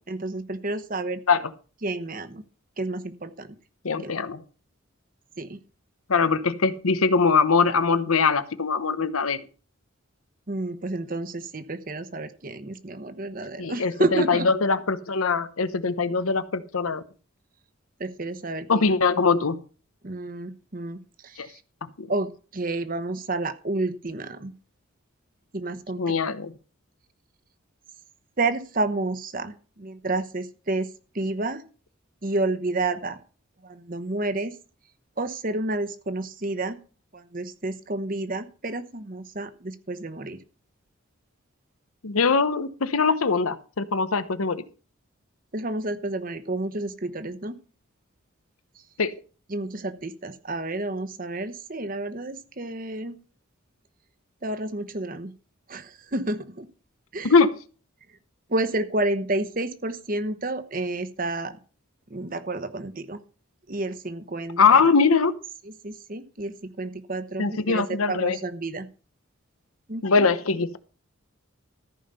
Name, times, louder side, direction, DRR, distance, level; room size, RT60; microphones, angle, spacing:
voice 1, 0.0-1.2 1.8-2.4 2.8-3.5 4.0-4.1 5.4-5.6 10.5-14.5 18.0-18.9 20.0-21.6 22.1-24.5 25.5-26.0 28.4-30.9 31.1-31.6 32.2-33.2 33.6-34.6 35.2-36.8 37.1-40.4 45.5-47.6 49.5-53.2 54.4-55.3 55.7-56.7 57.1-57.3 58.5-61.6 62.1-63.2 63.7-64.8 65.7-68.9 69.9-70.3, right 2 dB, 40° right, 11 dB, 1.0 m, -30 dB
voice 2, 3.8-4.4 6.1-9.4 13.6-17.0 18.7-19.6 21.4-21.5 22.0-22.1 26.0-26.5 42.0-44.6 49.0-49.1 57.2-57.5 64.6-65.3 67.4-68.4 70.0-70.8, left 4 dB, 90° left, 13 dB, 0.9 m, -22 dB
14.0 x 5.5 x 6.7 m, 0.38 s
head